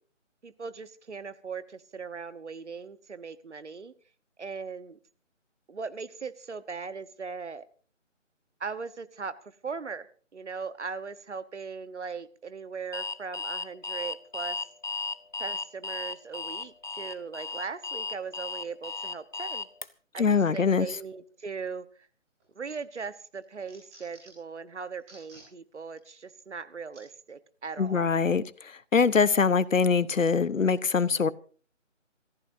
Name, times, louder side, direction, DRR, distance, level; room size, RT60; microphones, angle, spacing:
voice 1, 0.4-3.9 4.4-5.0 5.7-7.6 8.6-10.1 10.3-14.6 15.4-19.7 20.1-22.1 22.5-28.1, right 5 dB, 65° right, 1.3 m, -39 dB
Alarm, 12.9-19.9, left 4 dB, 40° left, 0.6 m, -35 dB
voice 2, 20.2-20.9 27.8-28.4 28.9-31.3, left 5 dB, 85° left, 1.1 m, -23 dB
sound 1, 22.4-22.8 23.2-24.5 25.0-25.5 26.0-26.1 26.9-27.1 27.8-28.0, right 1 dB, 10° right, 4.5 m, -54 dB
27.0 x 14.5 x 2.7 m
figure-of-eight pair, 170°, 38 cm